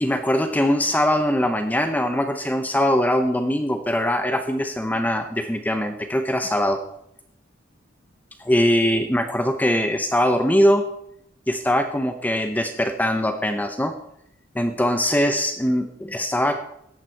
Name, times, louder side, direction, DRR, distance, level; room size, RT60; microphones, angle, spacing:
voice 1, 0.0-6.8 8.4-10.8 11.5-13.9 14.5-16.6, equal, 10° left, 6 dB, 0.7 m, -22 dB
14.0 x 9.0 x 4.5 m, 0.74 s
head